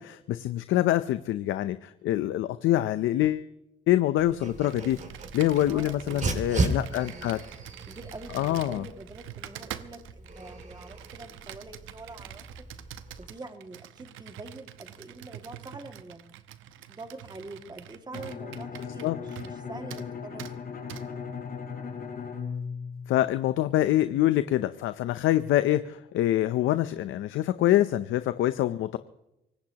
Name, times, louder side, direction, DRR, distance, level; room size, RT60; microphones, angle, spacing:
voice 1, 0.0-3.5 3.9-5.0 5.3-7.4 8.3-8.8 19.0-19.2 23.1-29.0, left 13 dB, 85° left, 12 dB, 0.7 m, -25 dB
Dog, 4.2-13.3, right 2 dB, 35° right, 2.5 m, -36 dB
Computer keyboard, 4.6-19.6 19.9-20.1 20.4-20.5 20.9-21.0, right 12 dB, 90° right, 0.9 m, -45 dB
voice 2, 5.7-7.3 7.8-12.5 13.2-16.3 16.9-20.5, right 2 dB, 20° right, 6 dB, 2.2 m, -45 dB
Bowed string instrument, 18.1-23.8, left 6 dB, 50° left, 5.6 m, -38 dB
24.0 x 18.5 x 3.0 m, 0.88 s
cardioid pair, 90°, 20 cm